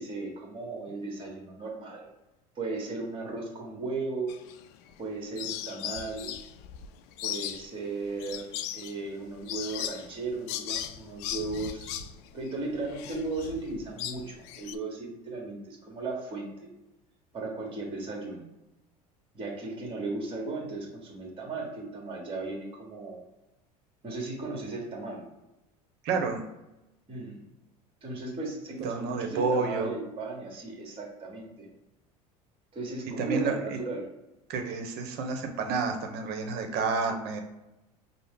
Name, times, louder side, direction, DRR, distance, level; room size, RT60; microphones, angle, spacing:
voice 1, 0.0-2.1 2.5-4.3 5.0-6.3 7.2-12.0 12.3-16.7 17.3-18.4 19.3-23.2 24.0-25.3 27.1-27.4 28.0-31.7 32.7-34.1, right 3 dB, 25° right, 0 dB, 1.3 m, -36 dB
sound 1, 4.3-5.0 5.4-14.7, left 10 dB, 55° left, 0.4 m, -38 dB
voice 2, 26.0-26.4 28.8-29.9 33.2-33.8 34.5-37.4, right 4 dB, 55° right, 5 dB, 0.9 m, -30 dB
5.2 x 2.1 x 3.6 m, 0.97 s
hypercardioid pair, 80°, 20 cm